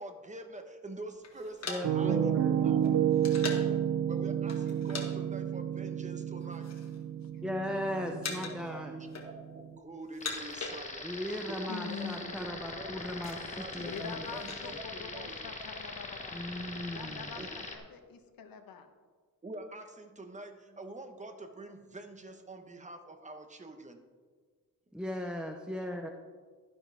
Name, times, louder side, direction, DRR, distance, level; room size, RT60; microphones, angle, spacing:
voice 1, 0.0-3.0 4.1-6.7 7.9-13.9 14.3-15.7 17.4-17.5 19.4-24.0, right 2 dB, 20° right, 6 dB, 1.1 m, -46 dB
sound 1, 1.2-3.8 4.5-5.1 5.3-5.6 6.2-7.0 7.3-7.8 8.2-8.7 9.0-9.6 10.0-11.3 11.5-11.6 11.8-12.2 12.7-14.6, left 4 dB, 50° left, 1.8 m, -42 dB
voice 2, 1.7-2.5 7.4-8.9 11.0-14.2 16.3-17.3 24.9-26.1, left 1 dB, 5° right, 3 dB, 0.6 m, -37 dB
Piano, 1.8-9.7, right 9 dB, 80° right, 0.7 m, -31 dB
sound 2, 10.2-17.8, left 3 dB, 20° left, 1.3 m, -42 dB
voice 3, 11.7-12.3 13.3-17.4 17.7-18.9, left 6 dB, 85° left, 6 dB, 1.2 m, -45 dB
12.5 x 11.0 x 3.5 m, 1.5 s
wide cardioid pair, 120°, 35 cm